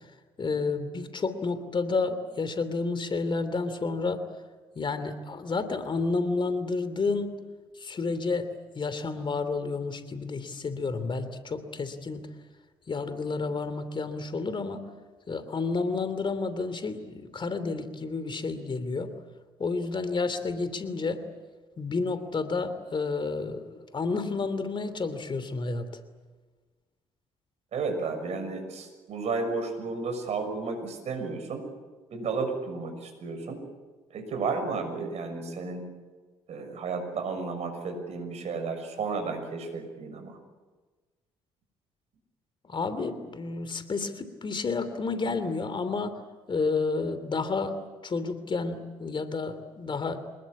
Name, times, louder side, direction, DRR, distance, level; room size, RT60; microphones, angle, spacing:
voice 1, 0.4-4.2 4.7-7.3 7.8-8.5 8.7-12.3 12.9-14.8 15.3-19.1 19.6-21.2 21.8-25.9 42.7-46.2 46.5-47.7 48.0-50.2, left 4 dB, 40° left, 11 dB, 2.9 m, -30 dB
voice 2, 27.7-31.6 32.1-33.6 34.1-35.8 36.5-40.4, right 4 dB, 55° right, 6 dB, 6.5 m, -32 dB
26.0 x 21.0 x 8.5 m, 1.3 s
hypercardioid pair, 55°, 13 cm